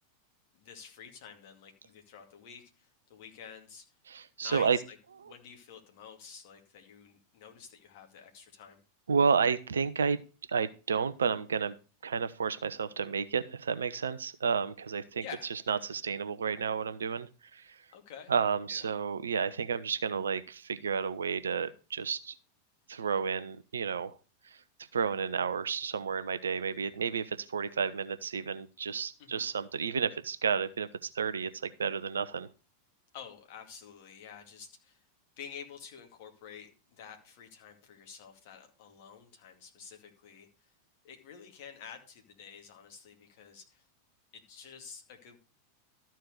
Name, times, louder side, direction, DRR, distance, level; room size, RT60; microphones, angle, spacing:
voice 1, 0.5-3.9 4.4-5.0 5.3-8.8 15.2-15.5 17.9-18.3 18.7-18.9 23.0-23.2 29.2-29.4 33.1-35.0 35.4-40.7 41.0-43.8 44.3-45.4, left 7 dB, 50° left, 4 dB, 2.3 m, -49 dB
voice 2, 4.1-4.8 9.1-10.2 10.5-11.7 12.0-15.2 15.7-17.8 18.3-22.3 22.9-24.2 24.4-24.6 24.9-32.5, right 6 dB, 70° right, 13 dB, 0.7 m, -31 dB
13.0 x 4.5 x 6.7 m, 0.34 s
figure-of-eight pair, 90°, 0 cm